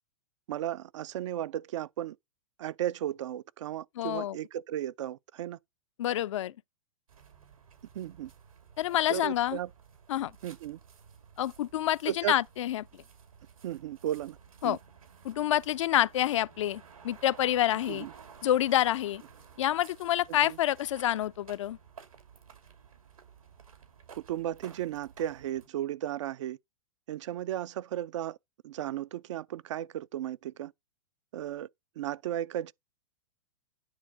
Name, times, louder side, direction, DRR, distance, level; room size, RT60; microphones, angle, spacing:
voice 1, 0.5-2.2 2.6-5.6 7.9-8.3 9.1-9.7 10.4-10.8 12.1-12.4 13.6-14.4 14.6-14.8 17.9-18.1 20.3-20.6 24.1-26.6 27.1-28.4 28.6-30.7 31.3-31.7 32.0-32.7, right 12 dB, 60° right, 0.5 m, -35 dB
voice 2, 4.0-4.4 6.0-6.5 8.8-9.6 10.1-10.3 11.4-12.9 14.6-14.8 15.2-18.1 18.4-19.2 19.6-21.8, left 12 dB, 60° left, 0.4 m, -28 dB
sound 1, 7.1-25.7, right 6 dB, 80° right, 2.7 m, -54 dB
9.8 x 3.8 x 6.0 m
figure-of-eight pair, 105°, 18 cm